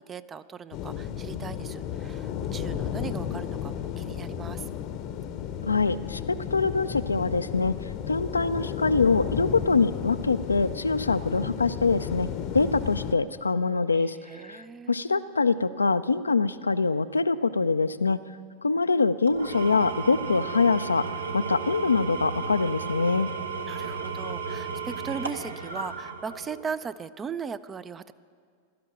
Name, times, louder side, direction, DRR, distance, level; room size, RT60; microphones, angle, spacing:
voice 1, 0.0-4.7 14.3-14.9 23.6-28.1, right 6 dB, 20° right, 15 dB, 0.4 m, -38 dB
sound 1, 0.7-13.2, left 9 dB, 40° left, 0.7 m, -33 dB
voice 2, 5.6-7.7 8.1-14.2 14.4-18.2 18.6-21.0 21.3-23.3, left 4 dB, 80° left, 12 dB, 0.4 m, -24 dB
Engine / Tools, 19.3-26.7, right 5 dB, 75° right, 1.0 m, -34 dB
16.0 x 13.0 x 6.1 m, 2.1 s
figure-of-eight pair, 90°, 0 cm